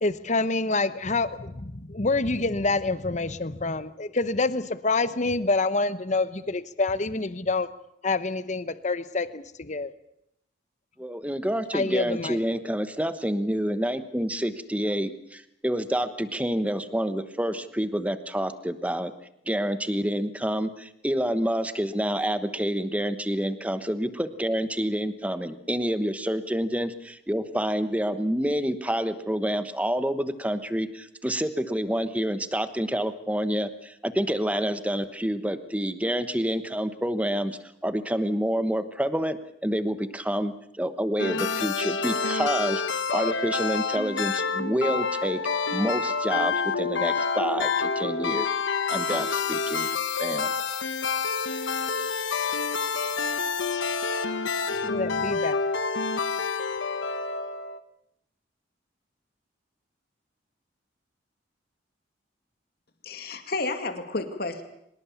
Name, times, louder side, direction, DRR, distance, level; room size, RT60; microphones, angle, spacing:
voice 1, 0.0-7.7 8.0-9.9 11.7-12.4 54.8-55.6, left 3 dB, 40° left, 14 dB, 1.0 m, -27 dB
voice 2, 11.0-19.1 19.5-45.4 45.7-48.5 48.9-49.9 50.2-50.5, equal, 5° right, 11 dB, 1.1 m, -28 dB
sound 1, 41.2-57.8, left 5 dB, 80° left, 1.3 m, -28 dB
voice 3, 63.0-64.6, left 3 dB, 55° left, 7 dB, 2.4 m, -31 dB
24.5 x 20.0 x 7.2 m, 0.80 s
head